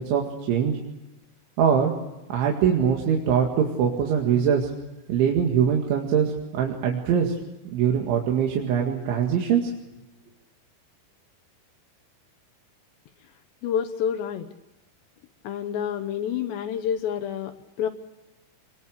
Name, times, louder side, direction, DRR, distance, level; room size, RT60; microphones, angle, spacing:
voice 1, 0.1-0.8 1.6-1.9 2.3-4.7 5.1-7.3 7.7-9.7, right 8 dB, 70° right, 0 dB, 4.4 m, -22 dB
voice 2, 13.6-14.5 15.4-17.9, left 8 dB, 70° left, 7 dB, 2.9 m, -28 dB
27.5 x 22.0 x 6.5 m, 1.0 s
omnidirectional pair, 5.7 m